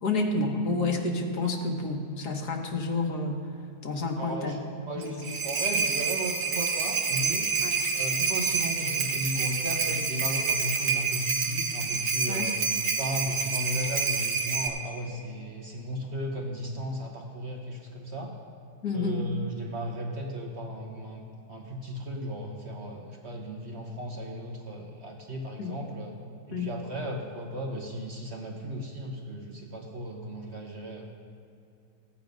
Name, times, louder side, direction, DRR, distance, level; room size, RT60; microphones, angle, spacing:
voice 1, 0.0-3.5 3.8-4.6 4.9-5.1 7.6-7.8 12.3-12.5 18.8-19.3 25.6-25.7 26.5-26.7, left 3 dB, 90° left, 2 dB, 1.8 m, -29 dB
voice 2, 4.2-4.6 4.9-7.5 7.9-12.6 12.9-18.3 18.9-26.1 26.5-31.1, equal, 50° right, 1 dB, 1.2 m, -35 dB
sound 1, 5.0-14.7, right 5 dB, 80° right, 1.7 m, -28 dB
15.5 x 8.6 x 5.2 m, 2.6 s
omnidirectional pair, 1.6 m